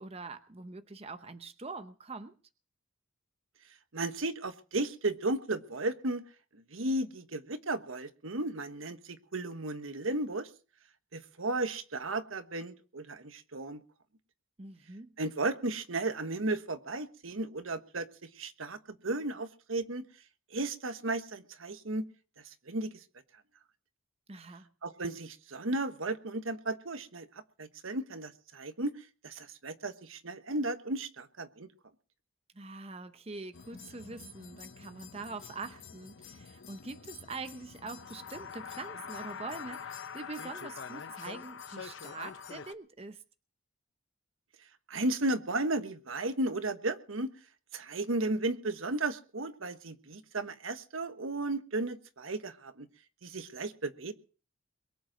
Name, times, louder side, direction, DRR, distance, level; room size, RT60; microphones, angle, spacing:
voice 1, 0.0-2.4 14.6-15.2 24.3-24.7 32.5-43.2, right 3 dB, 30° right, 10 dB, 0.8 m, -44 dB
voice 2, 3.9-6.2 6.7-10.5 11.1-13.8 15.2-18.1 18.4-20.0 20.5-22.1 22.7-22.9 24.8-27.3 27.6-28.9 29.2-31.7 44.9-47.3 47.7-52.9 53.2-54.1, right 2 dB, 80° right, 10 dB, 1.3 m, -34 dB
sound 1, 33.5-42.7, left 6 dB, 65° left, 0.8 m, -45 dB
22.5 x 7.9 x 6.0 m, 0.38 s
head